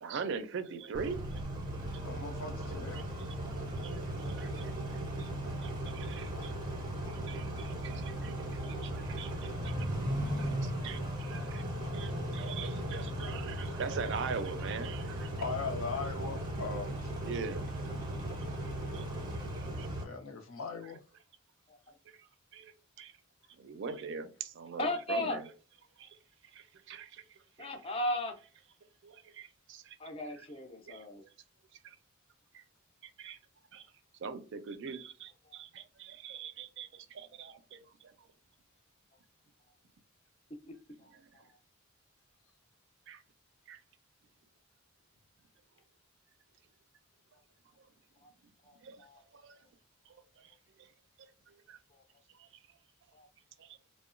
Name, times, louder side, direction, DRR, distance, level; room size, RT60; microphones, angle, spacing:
voice 1, 0.0-1.4 1.9-2.0 2.9-3.0 3.4-5.3 5.6-6.5 7.1-9.7 10.4-11.7 11.9-15.3 17.2-17.7 18.9-19.0 19.8-19.9 22.2-23.1 23.6-25.5 26.0-26.2 26.5-27.7 29.0-30.0 30.9-31.0 31.8-32.0 32.5-32.6 33.0-33.4 33.7-33.8 34.2-38.1 41.1-41.4 43.1-43.2 43.7-43.8 48.8-49.1 49.3-49.6 50.1-50.5 50.8-50.9 51.5-51.8 52.4-52.5 53.6-53.8, right 5 dB, 60° right, 0.4 m, -43 dB
Car / Idling / Accelerating revving vroom, 0.9-20.0, right 1 dB, 20° right, 0.7 m, -37 dB
voice 2, 1.8-3.0 15.4-17.1 20.0-21.0, left 4 dB, 75° left, 0.6 m, -39 dB
voice 3, 11.0-11.9 13.3-13.5 21.7-21.8 24.8-25.4 27.6-28.3 30.0-31.2 35.5-35.6 40.6-40.7 41.0-41.5 48.2-48.3 48.6-49.2 51.9-52.0 53.1-53.3, left 1 dB, 25° left, 0.4 m, -38 dB
2.8 x 2.0 x 2.4 m
head